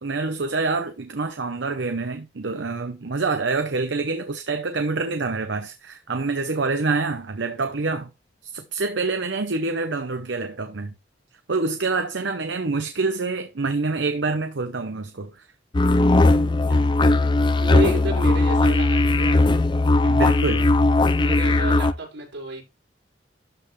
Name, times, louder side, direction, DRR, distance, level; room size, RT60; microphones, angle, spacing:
voice 1, 0.0-8.1 8.4-10.9 11.5-15.5 16.7-16.9 20.1-20.7, right 3 dB, 75° right, 0.8 m, -26 dB
sound 1, 15.7-21.9, left 2 dB, 25° left, 0.5 m, -18 dB
voice 2, 17.6-19.4 20.6-20.7 21.1-22.6, right 1 dB, 90° right, 5.3 m, -31 dB
12.5 x 5.6 x 3.2 m
head